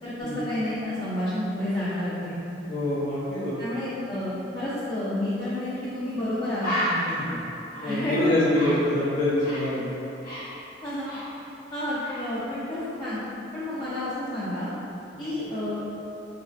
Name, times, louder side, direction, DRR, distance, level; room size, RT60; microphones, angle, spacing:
voice 1, 0.0-2.4 3.6-7.1 7.8-8.5 10.8-11.2 11.7-13.2 13.5-14.7 15.2-15.9, left 1 dB, 25° left, -11 dB, 0.4 m, -30 dB
voice 2, 2.7-3.6 7.2-7.4 7.8-10.0 15.1-15.3, left 1 dB, 75° left, -11 dB, 0.6 m, -25 dB
Bird, 5.7-5.9 6.2-6.3 6.6-9.8 10.0-11.7 12.0-12.3, equal, 55° left, 1.0 m, -32 dB
2.9 x 2.4 x 2.5 m, 2.8 s
head